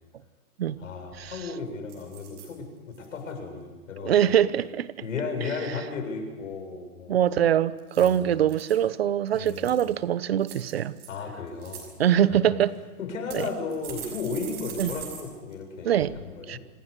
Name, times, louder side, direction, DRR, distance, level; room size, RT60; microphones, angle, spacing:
voice 1, 0.8-4.4 5.0-7.2 8.0-8.3 9.3-9.7 11.1-11.9 12.2-12.4 13.0-16.6, left 4 dB, 60° left, 7.4 m, -35 dB
sound 1, 1.1-1.4 1.9-2.5 2.9-3.3 7.8-8.8 9.3-9.9 10.4-11.1 11.5-11.8 12.6-12.7 13.3-15.2 15.5-15.6 16.0-16.1, right 8 dB, 20° right, 6.1 m, -42 dB
voice 2, 4.0-4.9 7.1-10.9 12.0-12.8 13.3-13.4 14.8-14.9 15.8-16.2 16.5-16.6, right 10 dB, 40° right, 1.0 m, -23 dB
27.5 x 19.5 x 8.2 m
hypercardioid pair, 165°, 45 cm